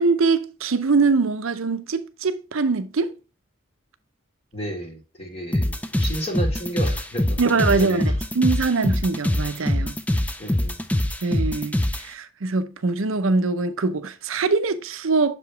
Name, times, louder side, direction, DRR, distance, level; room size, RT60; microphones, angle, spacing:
voice 1, 0.0-3.1 7.4-10.0 11.2-15.3, right 4 dB, 75° right, 0.6 m, -23 dB
voice 2, 4.5-8.0 10.4-10.8, right 1 dB, 30° left, 1.6 m, -33 dB
sound 1, 5.5-12.0, left 1 dB, 5° left, 0.4 m, -23 dB
6.9 x 4.9 x 3.3 m
head